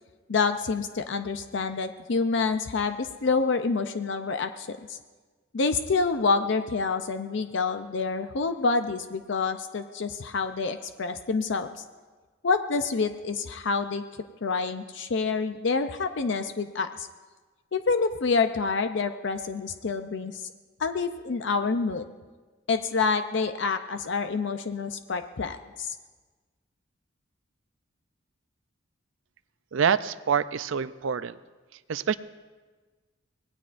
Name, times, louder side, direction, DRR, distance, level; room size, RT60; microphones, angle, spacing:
voice 1, 0.3-5.0 5.5-11.8 12.4-14.0 14.4-17.1 17.7-20.4 20.8-22.1 22.7-25.9, left 4 dB, 65° left, 8 dB, 0.6 m, -27 dB
voice 2, 29.7-31.4 31.9-32.2, right 7 dB, 75° right, 15 dB, 0.5 m, -26 dB
25.0 x 18.5 x 2.6 m, 1.4 s
head